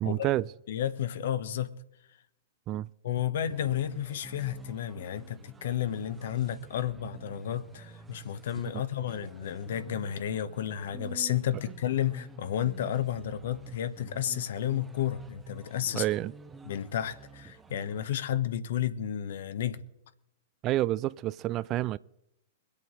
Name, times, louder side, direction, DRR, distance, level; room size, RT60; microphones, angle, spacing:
voice 1, 0.0-0.5 2.7-2.9 15.9-16.3 20.6-22.0, right 15 dB, 35° right, 0.4 m, -29 dB
voice 2, 0.7-1.7 3.0-16.1 16.6-19.8, left 10 dB, 65° left, 1.0 m, -32 dB
sound 1, 3.4-18.1, right 4 dB, 15° right, 0.9 m, -49 dB
23.5 x 8.4 x 4.0 m
figure-of-eight pair, 105°, 0 cm